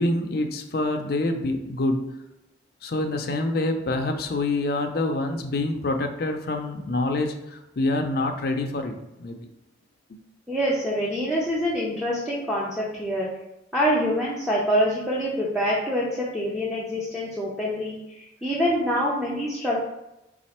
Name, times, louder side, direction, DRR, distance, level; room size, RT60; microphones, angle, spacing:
voice 1, 0.0-2.2 2.8-9.4 10.1-10.2, left 2 dB, 55° left, 5 dB, 0.5 m, -26 dB
voice 2, 10.5-13.3 13.7-19.8, equal, ahead, -6 dB, 0.6 m, -25 dB
4.2 x 2.4 x 4.2 m, 0.91 s
head